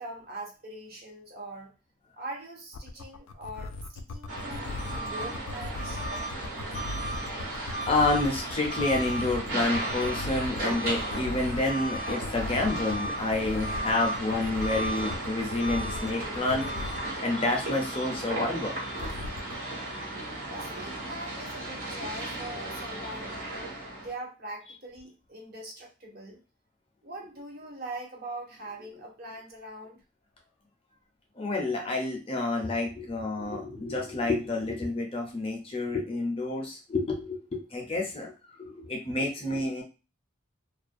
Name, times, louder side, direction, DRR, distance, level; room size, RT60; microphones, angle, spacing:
voice 1, 0.0-1.7 2.2-6.0 20.5-23.5 24.0-26.4 27.0-30.0, right 1 dB, 45° right, 0 dB, 0.6 m, -42 dB
sound 1, 2.7-17.1 19.0-19.5, left 3 dB, 90° left, 0.3 m, -38 dB
sound 2, 4.3-24.1, right 1 dB, 85° right, 1.2 m, -35 dB
voice 2, 7.9-16.6 17.2-18.8 31.4-38.3 38.6-39.8, left 2 dB, 25° left, 1 dB, 0.5 m, -29 dB
2.3 x 2.1 x 2.5 m, 0.31 s
head